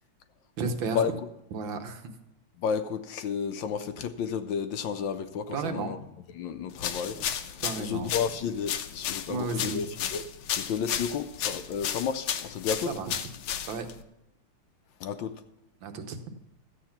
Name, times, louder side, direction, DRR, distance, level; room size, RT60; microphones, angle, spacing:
voice 1, 0.6-1.2 1.5-2.1 5.5-5.9 7.6-8.1 9.3-9.8 12.9-13.1 13.7-13.9 15.8-16.2, right 4 dB, 70° right, 1.7 m, -33 dB
voice 2, 2.6-6.0 6.3-10.3 10.5-12.9 15.0-15.4, left 7 dB, 70° left, 1.3 m, -32 dB
sound 1, 6.8-14.0, left 9 dB, 90° left, 1.6 m, -34 dB
13.0 x 8.1 x 5.8 m
omnidirectional pair, 2.3 m